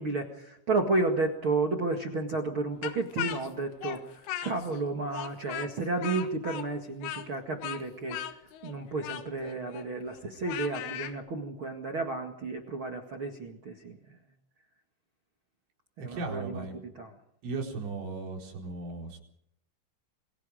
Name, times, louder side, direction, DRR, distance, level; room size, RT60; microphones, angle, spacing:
voice 1, 0.0-8.2 8.6-14.0 16.0-16.6 17.0-17.1, right 3 dB, 50° right, 3 dB, 1.5 m, -32 dB
Speech, 2.8-4.8 5.1-11.1, left 11 dB, 85° left, 4.0 m, -38 dB
voice 2, 16.0-16.8 17.4-19.2, right 3 dB, 85° right, 0 dB, 7.1 m, -36 dB
28.5 x 23.0 x 5.1 m, 0.71 s
omnidirectional pair, 5.5 m